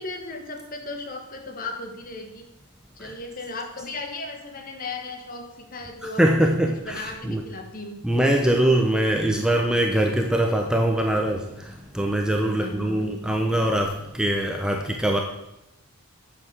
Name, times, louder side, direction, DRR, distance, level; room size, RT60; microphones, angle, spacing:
voice 1, 0.0-2.5 3.0-6.6 6.8-8.0 12.4-13.3, left 2 dB, 40° left, 4 dB, 1.6 m, -36 dB
voice 2, 6.0-7.4 8.0-15.2, right 1 dB, 5° right, 2 dB, 0.9 m, -23 dB
9.1 x 7.0 x 8.2 m, 0.87 s
head